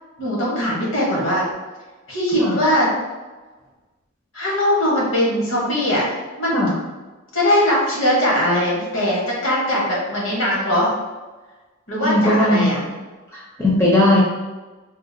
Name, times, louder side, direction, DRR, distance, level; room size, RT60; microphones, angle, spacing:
voice 1, 0.2-1.5 2.1-2.9 4.3-6.1 6.4-6.7 7.3-10.9 11.9-12.8, equal, 60° left, -5 dB, 1.2 m, -20 dB
voice 2, 12.0-12.8 13.3-14.2, left 1 dB, 10° left, -7 dB, 0.5 m, -17 dB
3.7 x 2.4 x 2.6 m, 1.2 s
head